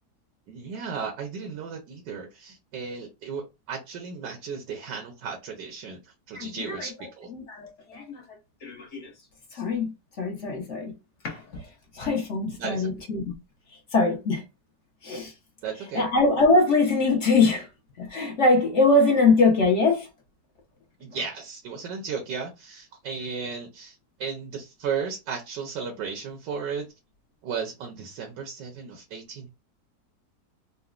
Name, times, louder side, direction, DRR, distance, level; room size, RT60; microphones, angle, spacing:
voice 1, 0.5-7.3 12.5-12.9 15.6-16.1 21.0-26.9 27.4-29.5, right 6 dB, 85° right, 1.4 m, -35 dB
voice 2, 6.3-6.9 7.3-8.2 8.6-9.1 9.5-9.9 10.2-10.9 11.2-11.7 11.9-13.4 13.9-14.4 15.0-15.3 15.9-17.7 18.0-20.1, left 3 dB, 55° left, 1.0 m, -23 dB
3.9 x 2.0 x 2.4 m
omnidirectional pair, 1.8 m